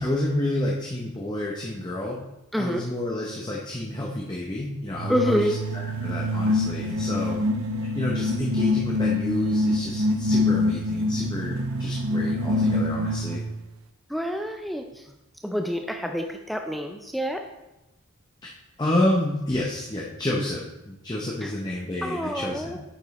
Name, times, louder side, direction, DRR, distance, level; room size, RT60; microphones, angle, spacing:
voice 1, 0.0-2.2 2.6-7.4 7.9-13.4 18.4-18.5 18.8-22.8, left 1 dB, 20° left, -3 dB, 0.8 m, -29 dB
voice 2, 2.5-2.8 5.1-5.6 14.1-15.1 15.4-17.4 21.4-21.5 22.0-22.8, equal, ahead, 4 dB, 0.4 m, -27 dB
sound 1, 4.9-13.5, left 1 dB, 75° right, 0.6 m, -25 dB
9.1 x 5.3 x 4.1 m, 0.94 s
head